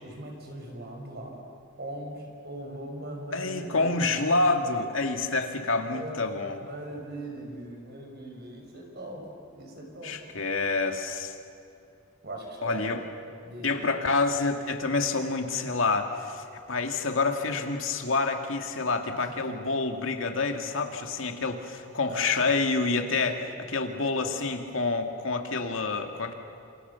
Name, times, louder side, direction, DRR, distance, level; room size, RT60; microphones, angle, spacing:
voice 1, 0.0-1.4 1.8-4.0 5.8-10.2 12.2-12.9 13.5-13.7 19.1-19.6 22.0-23.5 24.2-24.3, right 1 dB, 50° right, 2 dB, 5.8 m, -40 dB
voice 2, 3.3-6.6 10.0-11.4 12.6-13.0 13.6-23.4 23.7-26.3, left 3 dB, 65° left, 4 dB, 2.3 m, -28 dB
29.5 x 28.0 x 7.2 m, 2.5 s
head